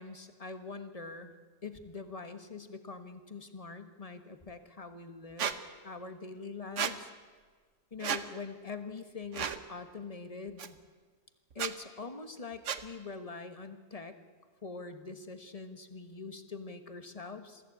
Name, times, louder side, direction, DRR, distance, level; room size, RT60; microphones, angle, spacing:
voice 1, 0.0-1.3 1.6-5.5 5.8-7.1 7.9-10.8 11.5-14.2 14.6-17.6, left 4 dB, 25° left, 9 dB, 1.3 m, -44 dB
Squeak, 5.4-5.6 6.8-6.9 8.0-8.2 9.3-9.6 10.6-10.7 11.5-11.7 12.6-12.8, right 8 dB, 55° right, 1.2 m, -32 dB
23.0 x 15.0 x 8.5 m, 1.5 s
omnidirectional pair, 1.6 m